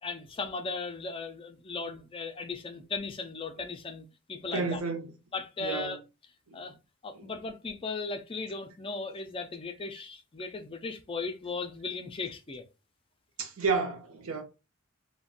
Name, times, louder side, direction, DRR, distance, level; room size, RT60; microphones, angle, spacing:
voice 1, 0.0-4.8 5.3-6.0 6.5-6.7 7.0-12.7, left 4 dB, 25° left, 0.4 m, -37 dB
voice 2, 4.5-5.1 5.6-5.9 6.5-6.7 7.1-7.3 13.4-14.4, right 4 dB, 75° right, 0.8 m, -31 dB
2.5 x 2.2 x 3.8 m
head